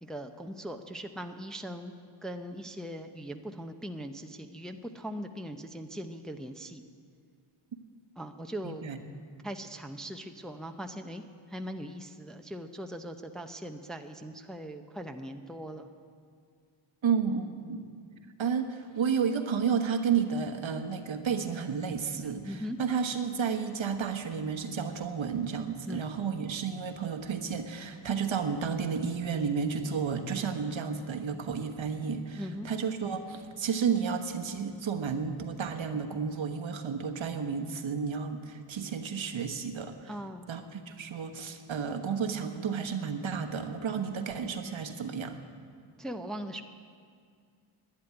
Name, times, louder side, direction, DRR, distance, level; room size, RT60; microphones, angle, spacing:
voice 1, 0.0-1.9 2.2-6.8 8.2-8.9 9.4-11.2 11.5-15.9 22.5-22.8 25.9-26.1 32.3-32.7 40.1-40.5 46.0-46.6, equal, ahead, 5 dB, 0.6 m, -40 dB
voice 2, 8.6-9.0 17.0-17.8 18.4-40.1 40.5-45.4, right 6 dB, 65° right, 6 dB, 1.2 m, -32 dB
11.5 x 9.6 x 9.8 m, 2.2 s
wide cardioid pair, 95°, 50 cm